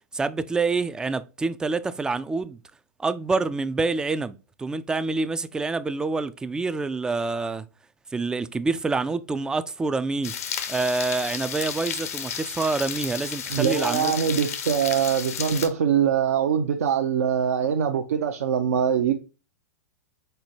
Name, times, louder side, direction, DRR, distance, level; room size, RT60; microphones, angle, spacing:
voice 1, 0.1-2.6 3.0-7.7 8.1-10.3 10.7-14.1, right 3 dB, 10° right, 0.3 m, -27 dB
sound 1, 10.2-15.7, left 8 dB, 65° left, 0.8 m, -33 dB
voice 2, 13.5-19.1, right 8 dB, 65° right, 0.5 m, -23 dB
4.4 x 4.3 x 2.7 m
figure-of-eight pair, 100°, 9 cm